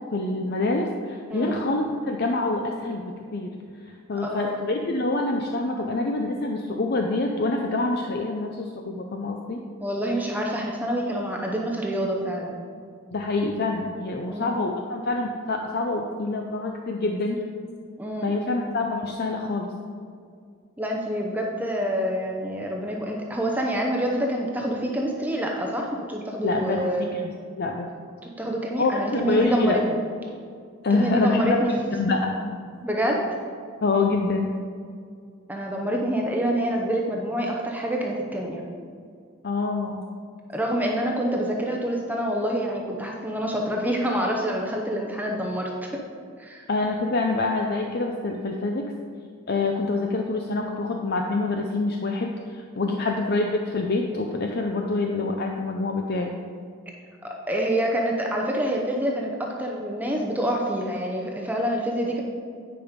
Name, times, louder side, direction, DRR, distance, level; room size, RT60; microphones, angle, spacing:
voice 1, 0.1-3.5 3.9-9.6 13.1-17.4 18.2-19.7 26.4-27.3 27.6-27.9 28.8-29.8 30.8-31.6 32.0-32.3 33.8-34.5 39.4-40.0 46.7-48.9 49.5-56.3, left 3 dB, 45° left, 2 dB, 0.5 m, -26 dB
voice 2, 1.3-1.6 4.1-4.6 9.8-12.6 14.2-14.6 18.0-18.4 20.8-27.1 28.2-30.0 30.9-31.7 32.8-33.3 35.5-38.7 40.5-46.0 46.4-46.7 52.9-53.1 57.2-62.2, equal, 10° right, 0 dB, 0.7 m, -27 dB
9.9 x 5.3 x 5.1 m, 2.2 s
head